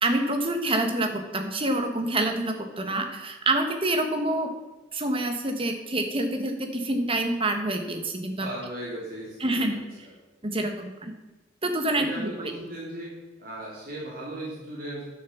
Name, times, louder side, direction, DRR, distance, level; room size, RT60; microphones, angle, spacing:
voice 1, 0.0-4.5 4.9-8.5 9.4-9.7 10.4-11.1 11.6-12.0, right 2 dB, 30° right, 5 dB, 1.5 m, -27 dB
voice 2, 8.4-10.1 11.9-13.1 13.4-15.0, right 1 dB, 50° right, -5 dB, 3.3 m, -37 dB
11.0 x 7.1 x 7.2 m, 1.1 s
head